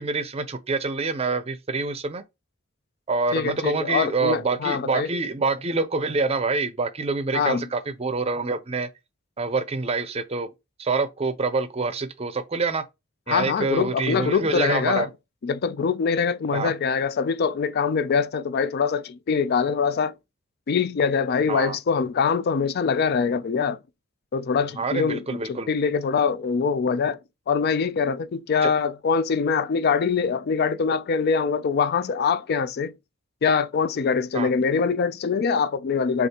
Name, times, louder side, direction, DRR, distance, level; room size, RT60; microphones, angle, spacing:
voice 1, 0.0-2.2 3.1-8.9 9.4-10.5 10.8-12.8 13.3-15.1 16.5-16.7 21.5-21.8 24.8-25.7 28.6-28.7 34.3-34.5, right 4 dB, 30° right, 0.6 m, -26 dB
voice 2, 3.3-5.1 7.3-7.7 13.3-15.1 15.4-20.1 20.7-23.8 24.3-27.2 27.5-32.9 33.4-36.3, left 5 dB, 50° left, 0.4 m, -23 dB
6.4 x 2.5 x 2.9 m
head